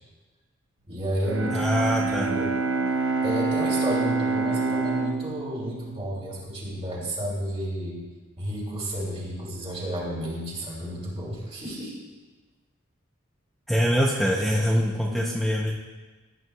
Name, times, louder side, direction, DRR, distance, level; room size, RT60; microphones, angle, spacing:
voice 1, 0.9-2.5 3.2-8.0 8.4-11.9 14.5-14.7 15.0-15.5, equal, 30° right, -4 dB, 3.5 m, -32 dB
Bowed string instrument, 1.2-7.2, right 3 dB, 75° right, 0.6 m, -27 dB
voice 2, 1.5-2.3 13.7-15.7, equal, ahead, -3 dB, 0.6 m, -24 dB
17.0 x 9.4 x 2.3 m, 1.3 s
head